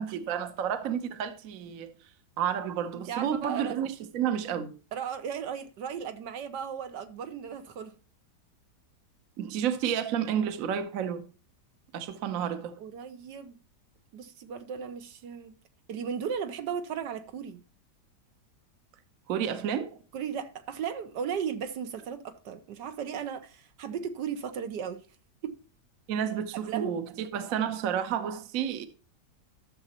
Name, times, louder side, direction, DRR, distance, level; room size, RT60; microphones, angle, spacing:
voice 1, 0.0-1.9 2.4-4.7 9.4-11.2 11.9-12.7 19.3-20.0 26.1-28.9, right 9 dB, 55° right, 1.2 m, -30 dB
voice 2, 2.9-3.7 4.9-7.9 12.8-13.5 14.1-15.5 15.9-17.6 20.1-25.0 25.4-25.6 26.7-27.0, right 7 dB, 80° right, 1.5 m, -36 dB
14.0 x 6.8 x 2.9 m
omnidirectional pair, 1.9 m